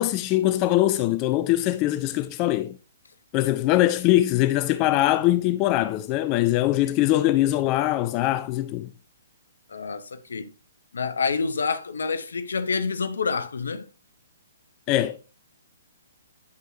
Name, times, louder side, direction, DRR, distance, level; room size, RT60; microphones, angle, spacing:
voice 1, 0.0-2.8 3.3-8.9 14.9-15.2, left 15 dB, 25° left, 0.3 m, -22 dB
voice 2, 9.7-10.5 10.9-13.9, left 5 dB, 65° left, 0.7 m, -27 dB
9.2 x 5.4 x 2.7 m
figure-of-eight pair, 125°, 0 cm